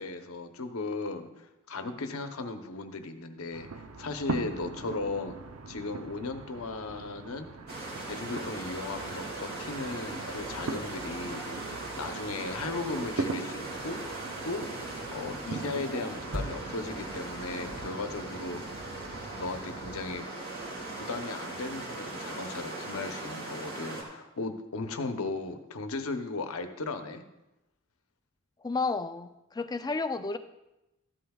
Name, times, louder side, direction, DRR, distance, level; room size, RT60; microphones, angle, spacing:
voice 1, 0.0-5.4 5.7-7.5 8.1-14.0 14.4-14.6 15.1-18.8 19.3-20.3 20.9-27.2, left 3 dB, 80° left, 7 dB, 0.9 m, -36 dB
sound 1, 3.5-20.2, right 3 dB, 85° right, 0.7 m, -41 dB
sound 2, 7.7-24.0, right 2 dB, 50° right, 2.7 m, -39 dB
voice 2, 28.6-30.4, left 3 dB, 20° left, 10 dB, 0.4 m, -31 dB
13.5 x 11.5 x 2.3 m, 0.95 s
head